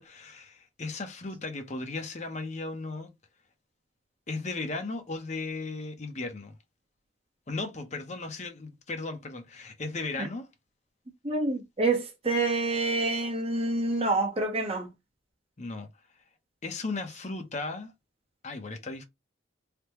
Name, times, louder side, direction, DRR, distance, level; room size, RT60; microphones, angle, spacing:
voice 1, 0.0-3.1 4.3-6.5 7.5-10.5 15.6-15.9 16.6-17.9 18.4-19.0, left 3 dB, 35° left, 0.7 m, -36 dB
voice 2, 11.2-14.9, right 2 dB, 30° right, 0.9 m, -27 dB
3.3 x 2.1 x 2.9 m
head